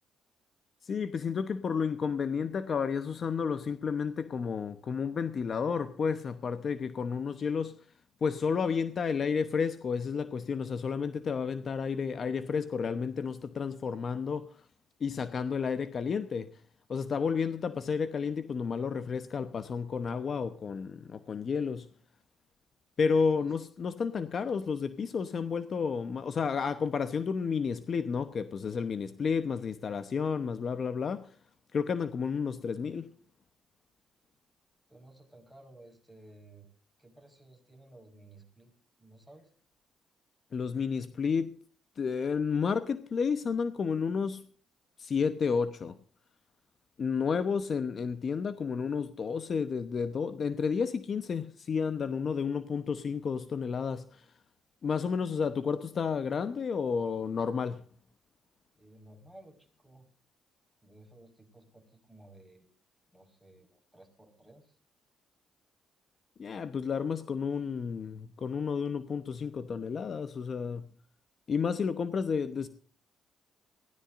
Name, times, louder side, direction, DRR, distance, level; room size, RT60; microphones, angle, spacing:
voice 1, 0.8-7.8 8.2-14.7 15.0-16.6 16.9-21.9 23.0-31.3 31.7-33.1 40.5-41.6 42.0-44.4 45.0-46.0 47.0-54.3 54.8-57.9 66.4-70.9 71.5-72.7, left 6 dB, 50° left, 0.9 m, -31 dB
voice 2, 34.9-36.7 37.0-38.7 39.0-39.5 58.8-60.1 60.8-62.7 63.1-64.8, right 1 dB, ahead, 5.1 m, -56 dB
22.0 x 16.0 x 2.6 m
cardioid pair, 90°, 0 cm